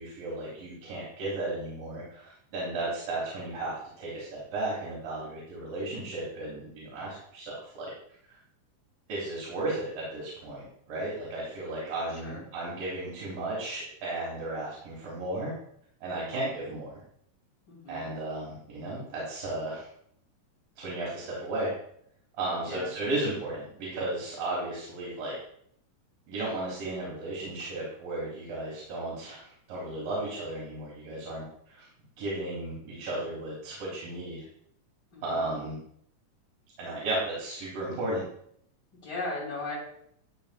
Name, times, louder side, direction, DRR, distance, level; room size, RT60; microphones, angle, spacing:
voice 1, 0.0-7.9 9.1-15.5 16.0-16.9 17.9-19.9 20.8-21.7 22.4-25.3 26.3-31.9 32.2-34.5 35.2-35.8 36.8-38.2, right 2 dB, 85° right, -6 dB, 3.2 m, -34 dB
voice 2, 12.1-12.4 16.0-16.4 17.7-18.1 22.6-23.0 35.1-35.5 39.0-39.8, left 2 dB, 35° left, -5 dB, 3.0 m, -38 dB
11.5 x 4.0 x 2.3 m, 0.69 s
omnidirectional pair, 3.8 m